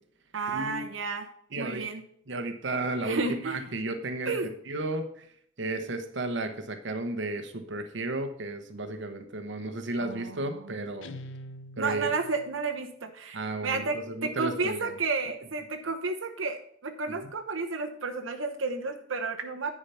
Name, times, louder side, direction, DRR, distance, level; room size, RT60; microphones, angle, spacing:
voice 1, 0.3-1.3 1.6-2.0 3.0-3.7 4.2-4.5 10.0-10.8 11.8-19.7, right 4 dB, 90° right, 4 dB, 1.0 m, -32 dB
voice 2, 1.5-1.8 2.3-4.3 4.7-5.1 5.6-11.1 11.8-12.1 13.3-14.9, right 2 dB, 65° right, 7 dB, 1.0 m, -33 dB
Guitar, 11.0-12.7, left 1 dB, 70° left, 0.7 m, -44 dB
10.0 x 4.9 x 5.6 m, 0.63 s
head